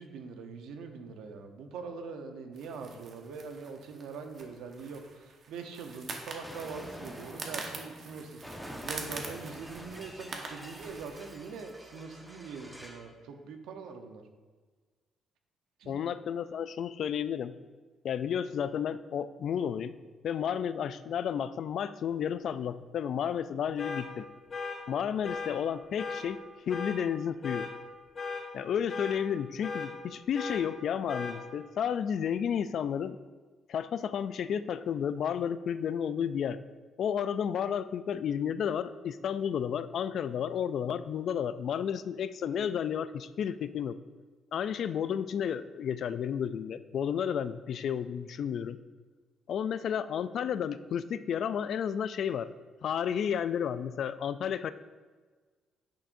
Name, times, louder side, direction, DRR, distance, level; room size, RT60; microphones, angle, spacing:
voice 1, 0.0-14.2 15.8-15.9, right 5 dB, 85° right, 5 dB, 0.8 m, -43 dB
sound 1, 2.5-11.3, right 4 dB, 55° right, 1.2 m, -45 dB
Explosion, 6.4-13.1, equal, 5° right, 1.1 m, -47 dB
voice 2, 15.9-17.5 18.0-19.9 20.2-24.3 24.9-26.4 26.7-27.7 28.5-33.2 33.7-36.6 37.0-44.0 44.5-48.8 49.5-52.5 52.8-54.7, left 8 dB, 65° left, 13 dB, 0.3 m, -32 dB
sound 2, 23.8-24.0 24.5-24.8 25.2-25.5 26.0-26.2 26.7-27.0 27.4-27.7 28.2-28.4 28.9-29.2 29.6-29.9 30.3-30.6 31.1-31.3, left 4 dB, 40° left, 2.1 m, -36 dB
9.9 x 6.2 x 2.6 m, 1.4 s
cardioid pair, 90°, 0 cm